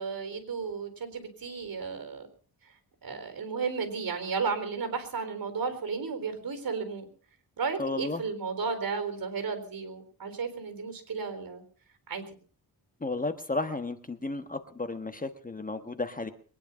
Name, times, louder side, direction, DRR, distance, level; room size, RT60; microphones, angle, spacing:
voice 1, 0.0-2.3 3.0-7.1 7.6-11.6 12.1-12.2, right 5 dB, 60° right, 8 dB, 4.0 m, -33 dB
voice 2, 7.8-8.2 13.0-16.3, left 2 dB, 20° left, 9 dB, 1.3 m, -33 dB
22.5 x 10.0 x 5.6 m, 0.43 s
wide cardioid pair, 115°, 39 cm